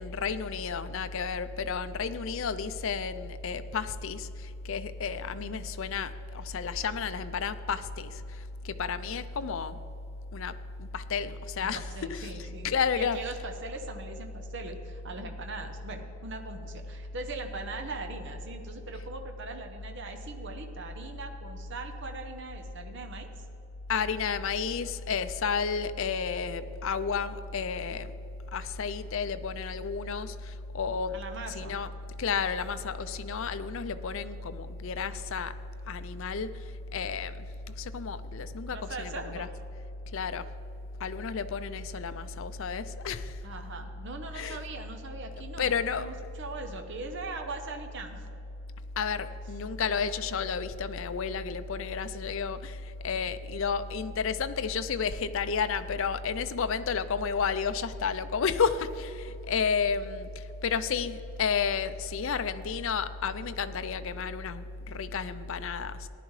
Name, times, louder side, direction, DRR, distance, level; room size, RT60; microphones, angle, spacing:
voice 1, 0.0-8.2 8.6-9.8 10.3-10.5 10.8-12.3 12.6-13.2 23.9-28.1 28.5-31.2 31.5-31.9 32.2-35.5 35.9-36.5 36.9-37.3 37.8-39.5 40.1-40.5 41.0-43.3 44.3-44.6 45.6-46.1 49.0-60.3 60.6-66.1, left 6 dB, 60° left, 11 dB, 0.5 m, -31 dB
voice 2, 11.7-12.7 13.0-23.3 31.1-31.7 38.7-39.5 43.4-48.3, right 3 dB, 55° right, 4 dB, 0.8 m, -40 dB
15.0 x 11.0 x 3.2 m, 2.9 s
head